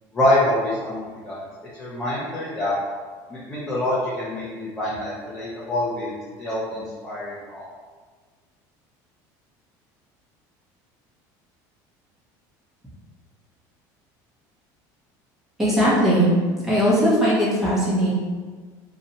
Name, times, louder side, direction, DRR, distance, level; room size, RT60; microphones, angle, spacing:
voice 1, 0.1-1.4 1.8-2.8 3.3-6.1 6.4-7.7, left 1 dB, 10° left, -10 dB, 0.6 m, -25 dB
voice 2, 15.6-16.3 16.6-18.1, equal, 5° right, -9 dB, 1.1 m, -19 dB
2.7 x 2.4 x 4.1 m, 1.5 s
cardioid pair, 150°, 9 cm